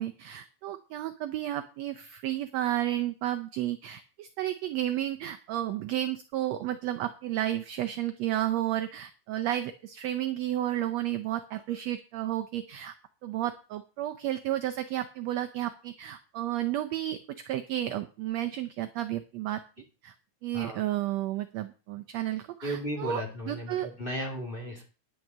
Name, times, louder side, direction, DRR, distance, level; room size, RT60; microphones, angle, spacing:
voice 1, 0.0-12.9 13.2-17.2 17.5-19.6 20.0-20.1 20.4-23.9, right 13 dB, 75° right, 8 dB, 1.6 m, -32 dB
voice 2, 22.6-24.8, equal, 15° left, 0 dB, 2.5 m, -35 dB
10.5 x 6.1 x 7.3 m, 0.34 s
omnidirectional pair, 3.7 m